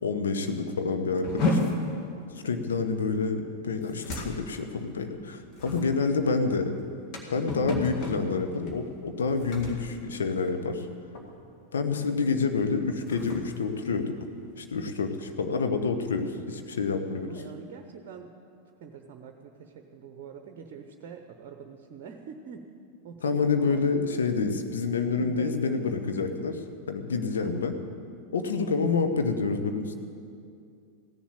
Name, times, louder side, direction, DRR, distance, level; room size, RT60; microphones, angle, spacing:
voice 1, 0.0-1.7 2.4-6.7 7.3-10.9 11.7-14.1 14.6-17.3 23.2-26.6 26.9-27.7 28.3-29.9, left 4 dB, 65° left, 6 dB, 1.0 m, -28 dB
sound 1, 1.2-10.9 11.1-11.5 11.9-12.2 12.7-14.6, left 2 dB, 40° left, 2.0 m, -34 dB
voice 2, 17.2-18.3 18.8-22.7 23.0-23.8 25.1-25.9 27.4-27.7 28.7-29.1, right 7 dB, 45° right, 5 dB, 0.9 m, -44 dB
15.5 x 7.2 x 8.9 m, 2.4 s
figure-of-eight pair, 90°, 0 cm